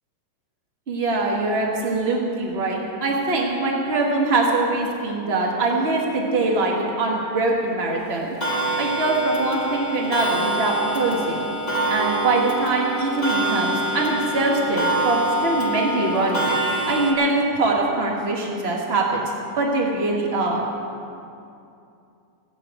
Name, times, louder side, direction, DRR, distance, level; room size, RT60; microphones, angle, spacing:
voice 1, 0.9-8.3 8.8-11.5 11.9-16.5 16.9-19.2 19.6-20.7, right 2 dB, 75° right, -1 dB, 0.5 m, -23 dB
Clock, 8.4-17.1, right 1 dB, 25° left, 0.9 m, -25 dB
16.0 x 8.4 x 8.1 m, 2.6 s
omnidirectional pair, 3.8 m